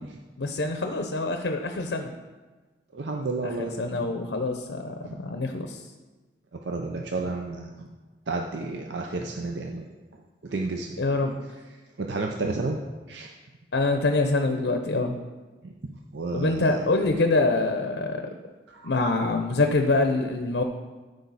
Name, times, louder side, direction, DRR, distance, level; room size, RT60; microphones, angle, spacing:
voice 1, 0.4-2.1 3.4-5.8 11.0-11.3 13.7-15.1 16.3-18.3 18.8-20.6, left 2 dB, 80° left, 5 dB, 0.7 m, -25 dB
voice 2, 2.9-4.1 5.0-5.1 6.7-7.9 8.3-9.8 10.4-11.0 12.0-12.8 13.1-13.3 15.6-15.7 16.1-16.8 18.7-18.9, right 3 dB, 75° right, 2 dB, 0.6 m, -31 dB
12.5 x 5.2 x 4.1 m, 1.3 s
head